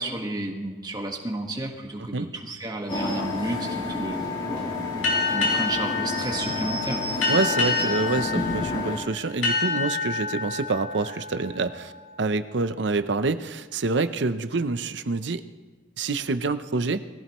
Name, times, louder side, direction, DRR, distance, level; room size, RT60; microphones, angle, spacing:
voice 1, 0.0-4.9 5.2-7.0, right 2 dB, 20° right, 1 dB, 1.6 m, -32 dB
sound 1, 2.9-9.0, left 3 dB, 30° left, 3.1 m, -29 dB
sound 2, 5.0-12.3, left 4 dB, 85° left, 3.4 m, -28 dB
voice 2, 7.3-11.9 12.2-15.4 16.0-17.0, right 3 dB, 65° right, 11 dB, 0.7 m, -27 dB
21.0 x 15.5 x 3.1 m, 1.4 s
head